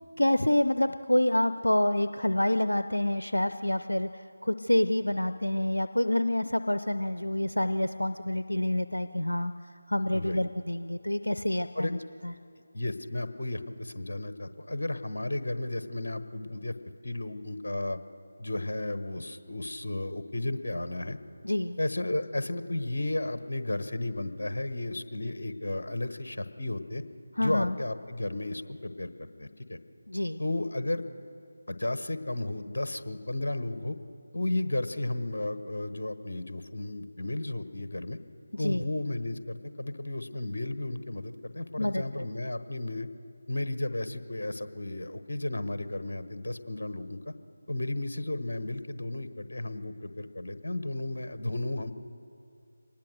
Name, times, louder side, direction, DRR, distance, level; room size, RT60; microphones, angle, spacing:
voice 1, 0.2-9.5 9.9-12.3 21.4-21.8 27.4-27.7 30.1-30.4 38.5-38.8 41.8-42.2, left 1 dB, 80° left, 11 dB, 0.6 m, -27 dB
voice 2, 12.7-16.7 17.0-18.0 18.4-21.2 21.8-27.0 27.4-29.1 29.4-29.8 30.4-31.0 31.7-34.0 34.3-38.2 38.6-43.1 43.5-47.3 47.7-51.9, left 2 dB, 55° left, 11 dB, 1.3 m, -33 dB
24.5 x 19.5 x 6.5 m, 2.5 s
figure-of-eight pair, 160°, 0 cm